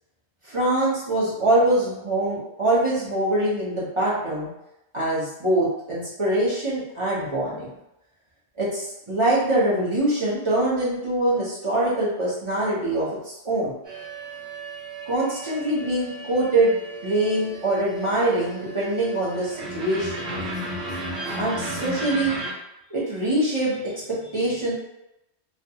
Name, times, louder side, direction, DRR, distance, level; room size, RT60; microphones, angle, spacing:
voice 1, 0.4-4.5 4.9-7.7 8.6-13.7 15.1-20.2 21.4-22.4 22.9-24.7, right 1 dB, 30° right, -8 dB, 0.9 m, -24 dB
sound 1, 13.8-22.5, right 1 dB, 65° right, 1.0 m, -34 dB
2.5 x 2.2 x 2.8 m, 0.88 s
omnidirectional pair, 1.1 m